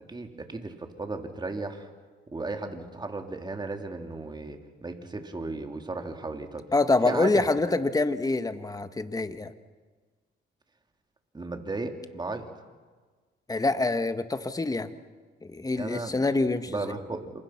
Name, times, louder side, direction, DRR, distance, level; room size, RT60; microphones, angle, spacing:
voice 1, 0.1-1.9 2.3-6.7 7.0-7.5 11.3-12.5 15.8-16.2 16.7-17.4, right 3 dB, 20° right, 4 dB, 3.1 m, -35 dB
voice 2, 6.7-9.5 13.5-14.9 15.4-16.9, left 3 dB, 20° left, 10 dB, 1.5 m, -26 dB
28.0 x 26.5 x 5.9 m, 1.4 s
cardioid pair, 90°, 20 cm